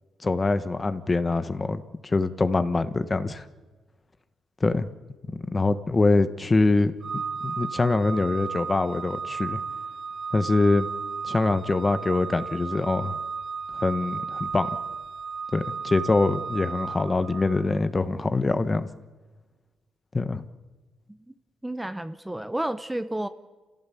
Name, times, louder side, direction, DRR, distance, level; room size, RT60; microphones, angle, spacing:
voice 1, 0.2-3.4 4.6-4.9 5.5-9.6 10.3-10.9 11.2-13.2 13.7-14.7 15.5-18.9 20.1-20.4, left 3 dB, 25° left, 11 dB, 1.3 m, -24 dB
Organ, 7.0-17.8, right 5 dB, 45° right, 0.7 m, -34 dB
voice 2, 21.6-23.3, right 1 dB, 10° right, 11 dB, 1.0 m, -31 dB
28.0 x 16.0 x 8.5 m, 1.3 s
cardioid pair, 90°, 0 cm